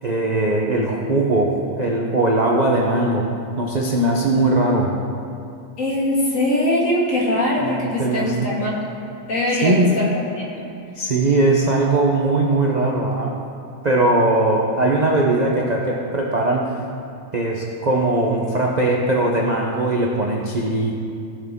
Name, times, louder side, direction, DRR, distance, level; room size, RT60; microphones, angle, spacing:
voice 1, 0.0-3.3 3.6-4.9 7.6-8.5 9.6-9.9 11.0-13.3 13.8-16.7 17.3-21.0, right 2 dB, 55° right, -2 dB, 0.4 m, -20 dB
voice 2, 5.8-8.7 9.3-10.1 10.4-10.7, left 1 dB, 45° left, -4 dB, 2.1 m, -21 dB
17.5 x 6.2 x 3.6 m, 2.5 s
omnidirectional pair, 2.0 m